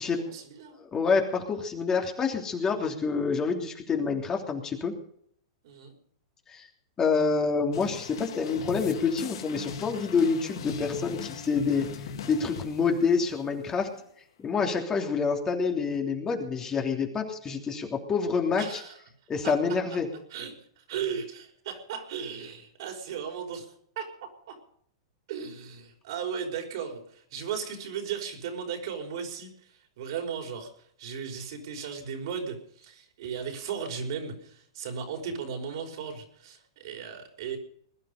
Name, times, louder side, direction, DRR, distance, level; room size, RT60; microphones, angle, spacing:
voice 1, 0.0-0.8 5.6-5.9 18.6-19.0 19.4-19.8 20.3-23.7 23.9-24.6 25.3-30.7 31.0-37.6, right 7 dB, 65° right, 4 dB, 5.1 m, -36 dB
voice 2, 0.8-4.9 6.5-6.7 7.0-11.9 12.2-13.9 14.4-18.8 19.3-20.1, left 5 dB, 20° left, 2 dB, 3.2 m, -27 dB
sound 1, 7.7-13.7, left 7 dB, 70° left, 2.2 m, -40 dB
21.0 x 11.5 x 5.3 m, 0.64 s
hypercardioid pair, 120°, 3 cm